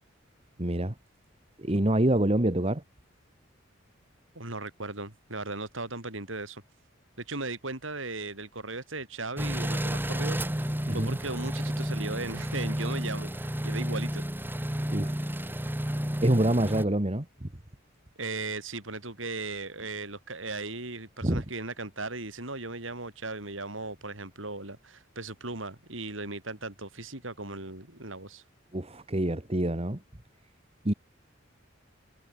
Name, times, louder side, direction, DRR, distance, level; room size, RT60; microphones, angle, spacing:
voice 1, 0.6-0.9 1.6-2.8 10.9-11.2 14.9-15.3 16.2-17.5 21.2-21.4 28.7-30.0 30.9-31.0, right 1 dB, 30° right, 1.8 m, -26 dB
voice 2, 4.4-6.6 7.2-14.2 18.2-28.4, right 3 dB, 75° right, 7.1 m, -37 dB
sound 1, 9.4-16.8, equal, 10° right, 1.5 m, -31 dB
head